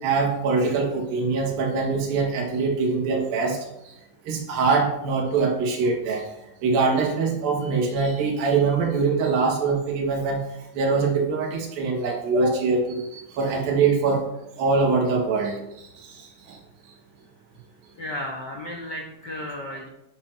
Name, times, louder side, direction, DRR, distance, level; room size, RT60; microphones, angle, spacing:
voice 1, 0.0-3.6 4.2-6.3 6.6-10.4 10.7-14.3 14.6-16.6, right 4 dB, 80° right, 0 dB, 3.5 m, -23 dB
voice 2, 18.0-19.9, left 1 dB, 90° left, -1 dB, 0.9 m, -34 dB
11.5 x 11.0 x 2.8 m, 0.89 s
omnidirectional pair, 4.1 m